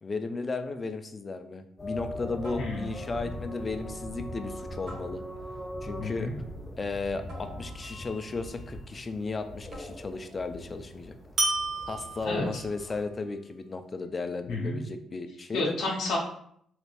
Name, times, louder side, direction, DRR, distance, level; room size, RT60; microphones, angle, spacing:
voice 1, 0.0-5.2 5.8-6.3 6.8-11.1 11.9-15.7, left 3 dB, 30° left, 8 dB, 0.4 m, -35 dB
sound 1, 0.6-1.0 2.4-3.2 4.9-5.7 7.3-8.2 9.7-10.3, right 1 dB, 85° right, 1.3 m, -48 dB
sound 2, 1.8-13.0, equal, 15° left, 0.8 m, -41 dB
voice 2, 6.0-6.4 12.2-12.4 14.5-14.8 15.5-16.2, left 2 dB, 85° left, -2 dB, 0.6 m, -30 dB
sound 3, 7.8-8.5 11.4-12.8, right 3 dB, 55° right, 1.0 m, -32 dB
3.2 x 3.2 x 2.5 m, 0.68 s
cardioid pair, 90°, 0 cm